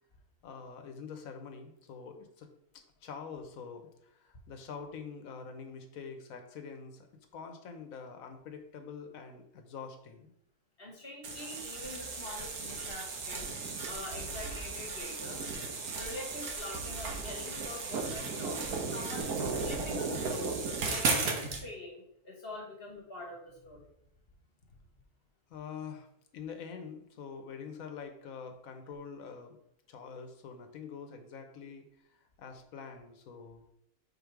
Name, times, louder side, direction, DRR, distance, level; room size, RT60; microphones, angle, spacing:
voice 1, 0.4-2.5 3.0-10.3 25.5-26.1 26.3-29.6 29.9-31.9 32.4-33.6, left 6 dB, 70° left, 6 dB, 1.3 m, -45 dB
voice 2, 10.8-13.6 13.9-15.4 15.9-20.5 20.9-23.9, left 2 dB, 40° left, 0 dB, 1.5 m, -45 dB
sound 1, 11.2-21.6, right 4 dB, 85° right, 1.6 m, -35 dB
5.3 x 4.4 x 4.6 m, 0.75 s
omnidirectional pair, 1.5 m